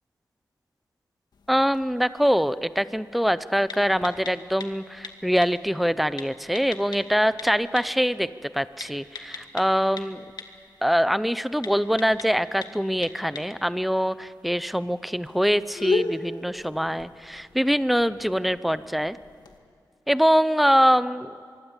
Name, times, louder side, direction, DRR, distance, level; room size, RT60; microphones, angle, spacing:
sound 1, 1.3-19.6, left 4 dB, 70° left, 2.1 m, -39 dB
voice 1, 1.5-8.3 8.5-10.2 10.8-19.2 20.1-21.3, equal, ahead, 15 dB, 0.6 m, -23 dB
24.5 x 23.5 x 8.2 m, 2.3 s
wide cardioid pair, 130°, 8 cm